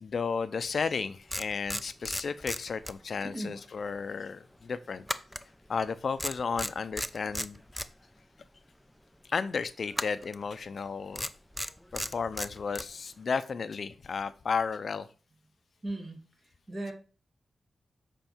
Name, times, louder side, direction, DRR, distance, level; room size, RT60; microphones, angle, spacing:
voice 1, 0.0-5.0 5.7-7.6 9.3-11.3 11.9-15.1, left 5 dB, 60° left, 13 dB, 0.5 m, -33 dB
sound 1, 0.9-1.0 1.3-3.4 3.6-3.8 5.1-5.9 6.2-7.9 9.9-10.4 11.1-12.9, equal, 5° left, 0.5 m, -35 dB
voice 2, 3.2-3.6 15.8-16.2 16.7-16.9, right 1 dB, 35° right, 3 dB, 2.2 m, -37 dB
7.7 x 4.5 x 4.4 m, 0.36 s
cardioid pair, 80°, 0 cm